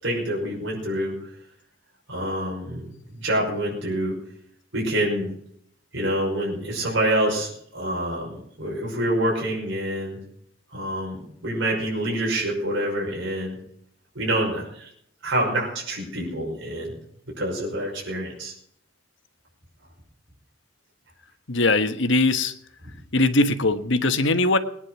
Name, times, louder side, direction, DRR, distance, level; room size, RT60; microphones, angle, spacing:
voice 1, 0.0-1.2 2.1-2.9 3.1-4.2 4.7-5.3 5.9-10.2 10.7-13.6 14.2-14.9 15.2-16.9 17.4-18.5, right 1 dB, 75° right, -3 dB, 5.7 m, -26 dB
voice 2, 21.5-22.5 23.1-24.6, left 2 dB, 70° left, 9 dB, 1.3 m, -20 dB
20.0 x 10.0 x 6.1 m, 0.68 s
head